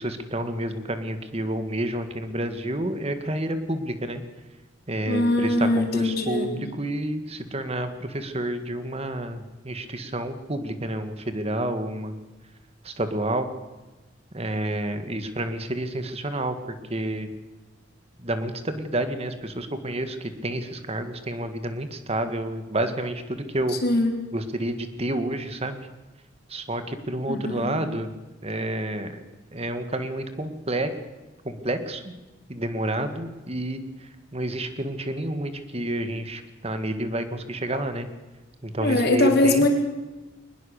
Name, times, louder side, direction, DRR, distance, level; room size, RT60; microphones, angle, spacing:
voice 1, 0.0-4.2 4.9-12.1 12.8-13.5 14.3-16.5 16.9-17.3 18.2-23.8 24.3-25.8 26.5-28.1 28.4-29.2 29.5-30.9 31.5-32.1 32.5-33.8 34.3-38.1 38.6-39.7, right 1 dB, 30° right, 9 dB, 1.9 m, -29 dB
voice 2, 5.1-6.5 23.7-24.1 27.3-27.7 38.8-39.7, left 2 dB, 55° left, 3 dB, 3.8 m, -22 dB
22.5 x 20.5 x 6.7 m, 1.1 s
head